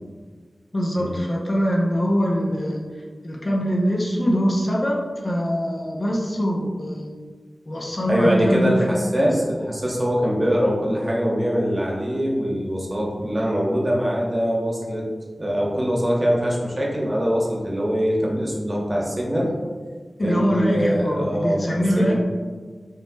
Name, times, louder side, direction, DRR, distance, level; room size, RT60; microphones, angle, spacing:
voice 1, 0.7-2.8 3.2-7.1 7.7-9.4 20.2-22.1, equal, 45° left, -2 dB, 0.7 m, -23 dB
voice 2, 8.1-15.0 15.4-19.5 20.2-22.1, equal, 30° right, -3 dB, 1.0 m, -23 dB
5.6 x 3.1 x 2.3 m, 1.5 s
wide cardioid pair, 70°, 0 cm